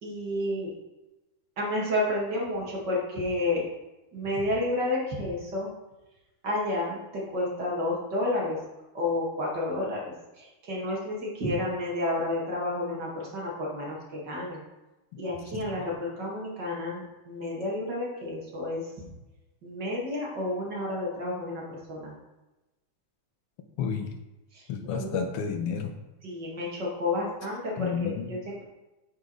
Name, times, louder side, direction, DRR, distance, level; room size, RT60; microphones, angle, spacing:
voice 1, 0.0-0.7 1.6-3.7 4.1-5.7 6.4-8.6 8.9-10.0 10.4-14.6 15.2-18.9 19.6-22.2 24.5-25.2 26.2-28.6, left 1 dB, 55° right, -4 dB, 2.7 m, -31 dB
voice 2, 23.8-24.1 24.7-26.0 27.8-28.3, left 6 dB, 90° left, 5 dB, 1.9 m, -31 dB
9.3 x 4.8 x 4.7 m, 1.0 s
omnidirectional pair, 2.4 m